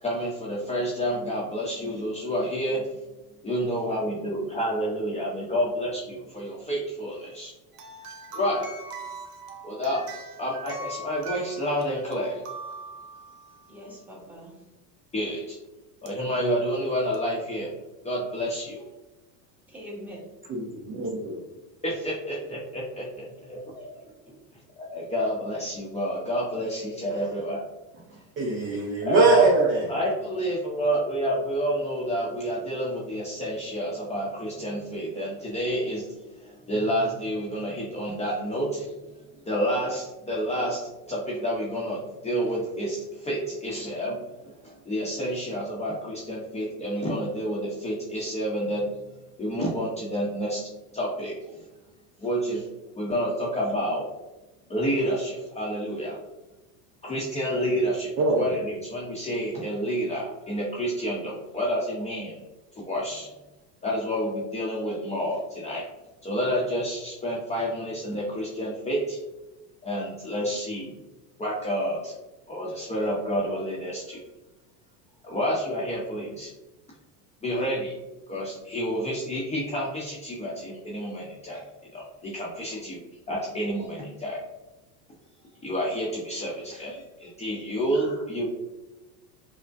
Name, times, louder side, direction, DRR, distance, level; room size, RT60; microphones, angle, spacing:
voice 1, 0.0-2.8 3.4-7.5 8.3-8.7 9.6-10.1 10.4-12.4 15.1-15.6 16.0-17.7 18.0-18.8 21.8-23.6 24.8-27.6 29.0-29.5 29.9-39.0 39.5-40.8 41.1-44.2 44.6-49.0 49.4-51.6 52.2-52.7 53.0-54.1 54.7-56.2 57.0-62.4 62.7-63.3 63.8-65.8 66.2-69.2 69.8-70.9 71.4-72.1 72.5-74.2 75.2-76.5 77.4-77.9 78.3-81.6 81.9-84.4 85.6-88.5, equal, 15° left, -5 dB, 0.7 m, -29 dB
La vie en rose music box, 7.7-13.7 16.1-16.2 17.1-17.2, right 1 dB, 75° right, 0.9 m, -41 dB
voice 2, 13.7-14.6 19.7-20.2 22.3-22.4 23.3-24.1 43.7-43.8 82.6-82.8 87.9-88.2, equal, 5° right, -5 dB, 1.4 m, -44 dB
voice 3, 20.9-21.4 28.4-29.9 58.2-58.5, right 3 dB, 25° right, -1 dB, 0.5 m, -22 dB
5.2 x 2.1 x 2.5 m, 1.0 s
hypercardioid pair, 95°, 48 cm